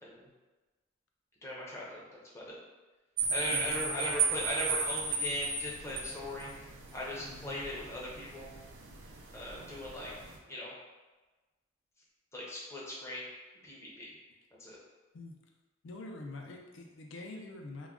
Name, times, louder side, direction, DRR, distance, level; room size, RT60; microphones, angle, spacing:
voice 1, 1.4-2.6 3.3-6.5 6.9-8.5 9.3-10.1 10.5-10.7 12.3-13.3 13.6-14.1 14.6-14.8, left 1 dB, 15° left, -5 dB, 0.5 m, -38 dB
sound 1, 3.2-10.4, right 5 dB, 75° right, 0.4 m, -36 dB
voice 2, 3.5-4.2 7.1-7.6 15.1-15.4 15.8-17.9, left 2 dB, 70° left, 2 dB, 0.4 m, -45 dB
2.3 x 2.1 x 3.5 m, 1.2 s
head